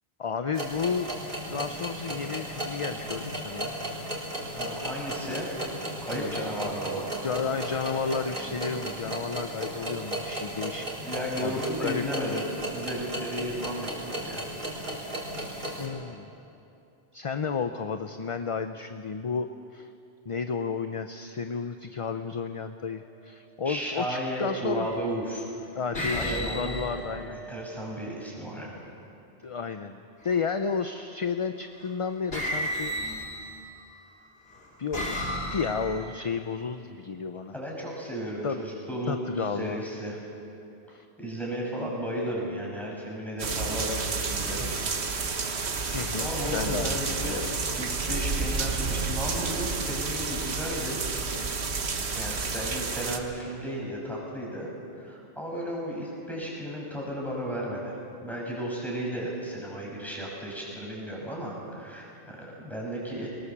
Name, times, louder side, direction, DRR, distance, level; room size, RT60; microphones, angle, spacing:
voice 1, 0.2-1.2 1.4-3.7 6.1-6.4 6.6-6.8 7.2-11.1 11.4-12.1 15.8-16.3 17.1-19.9 20.3-24.9 25.8-27.4 29.4-32.9 34.8-37.5 38.4-38.6 39.1-39.8 40.9-41.1 45.9-47.5, left 5 dB, 40° left, 8 dB, 0.6 m, -32 dB
sound 1, 0.5-15.9, right 1 dB, 55° right, 3.9 m, -35 dB
voice 2, 4.5-5.5 6.0-7.3 9.1-9.2 11.0-12.4 12.7-14.5 23.6-25.4 25.9-28.8 37.5-40.2 41.2-44.7 45.7-51.0 52.2-63.4, equal, ahead, -3 dB, 5.7 m, -34 dB
sound 2, 23.7-24.0 24.8-25.3 25.9-28.0 30.2-30.8 31.8-31.9 32.3-33.9 34.5-36.2, equal, 70° left, 3.0 m, -34 dB
sound 3, 43.4-53.2, right 4 dB, 85° right, 1.5 m, -30 dB
22.0 x 19.5 x 7.3 m, 2.7 s
omnidirectional pair, 1.1 m